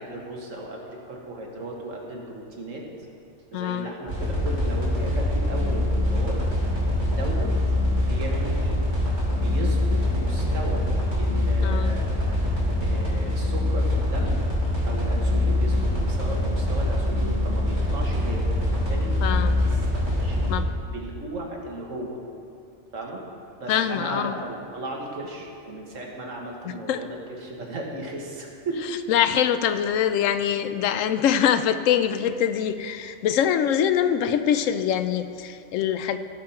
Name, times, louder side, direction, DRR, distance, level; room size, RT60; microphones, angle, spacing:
voice 1, 0.0-2.9 3.5-6.4 7.1-7.5 8.0-8.8 9.3-10.9 11.2-12.3 12.8-14.4 14.8-19.9 20.2-20.4 20.9-22.2 22.9-23.2 23.6-28.8, right 1 dB, 85° right, -1 dB, 1.8 m, -35 dB
voice 2, 3.5-3.9 11.6-12.0 19.2-19.6 20.5-20.6 23.7-24.3 26.7-27.0 29.1-36.2, left 9 dB, 90° left, 10 dB, 1.0 m, -24 dB
sound 1, 4.1-20.6, left 1 dB, 70° right, 3.1 m, -24 dB
16.0 x 5.6 x 4.4 m, 2.5 s
omnidirectional pair, 1.3 m